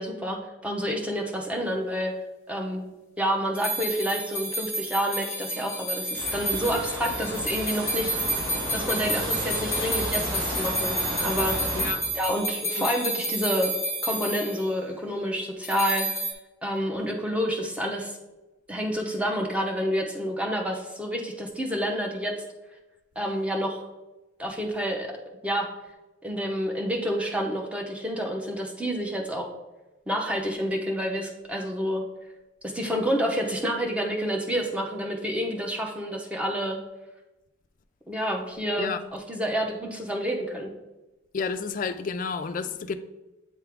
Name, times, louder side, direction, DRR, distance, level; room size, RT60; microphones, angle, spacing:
voice 1, 0.0-2.1 2.5-2.8 3.2-8.4 8.7-11.8 12.1-13.7 14.0-16.1 16.6-18.1 18.7-22.3 23.2-23.8 24.4-25.1 25.4-25.7 26.2-29.5 30.1-32.0 32.6-36.8 38.1-40.7, equal, 5° right, 0.7 m, -28 dB
sound 1, 3.5-14.6 15.6-16.3, right 1 dB, 10° left, 1.1 m, -30 dB
sound 2, 6.2-11.9, equal, 75° right, 1.8 m, -33 dB
voice 2, 11.7-12.1 12.6-12.9 38.8-39.0 41.3-43.0, left 5 dB, 40° left, 0.4 m, -31 dB
8.5 x 3.5 x 3.5 m
head